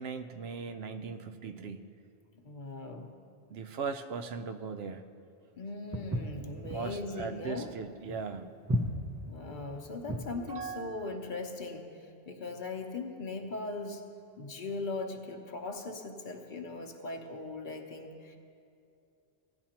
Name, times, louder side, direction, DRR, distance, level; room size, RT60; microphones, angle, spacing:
voice 1, 0.0-1.8 3.5-5.0 6.7-8.5 10.3-11.0, right 5 dB, 75° right, 8 dB, 0.8 m, -39 dB
voice 2, 2.4-3.1 5.6-7.7 9.3-14.0 14.4-18.4, left 3 dB, 50° left, 4 dB, 0.9 m, -39 dB
Walk footsteps, 5.9-10.4, equal, 25° right, 0.4 m, -34 dB
16.5 x 10.5 x 2.9 m, 2.5 s
omnidirectional pair, 1.1 m